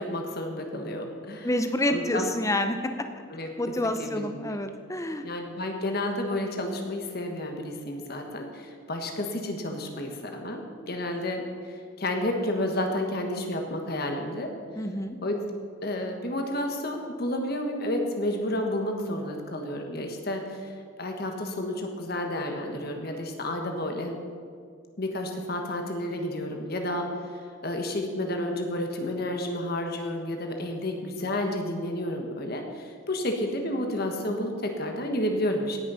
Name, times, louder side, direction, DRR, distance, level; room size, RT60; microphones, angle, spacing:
voice 1, 0.0-1.5 1.9-2.3 3.3-3.5 4.0-4.6 5.2-14.5 15.2-15.4 15.8-24.2 25.0-27.1 27.6-35.8, left 1 dB, 45° left, 3 dB, 1.4 m, -31 dB
voice 2, 1.4-2.9 3.6-5.3 14.8-15.2, left 1 dB, 15° left, 7 dB, 0.6 m, -28 dB
17.5 x 6.5 x 5.6 m, 2.1 s
head